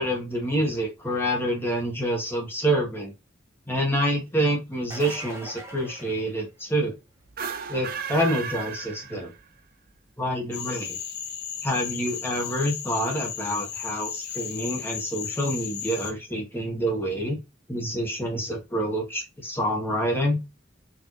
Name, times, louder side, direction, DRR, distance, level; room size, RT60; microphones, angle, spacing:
voice 1, 0.0-3.1 3.7-6.9 7.7-9.3 10.2-11.0 11.6-17.4 17.7-20.4, equal, 10° left, -1 dB, 1.1 m, -27 dB
sound 1, 4.7-7.0 12.5-12.6 14.4-14.5, right 1 dB, 15° right, 0.8 m, -42 dB
sound 2, 7.3-9.6, right 6 dB, 50° right, 0.4 m, -34 dB
Cricket / Frog, 10.5-16.1, left 8 dB, 55° left, 0.7 m, -35 dB
4.4 x 2.6 x 3.0 m, 0.25 s
head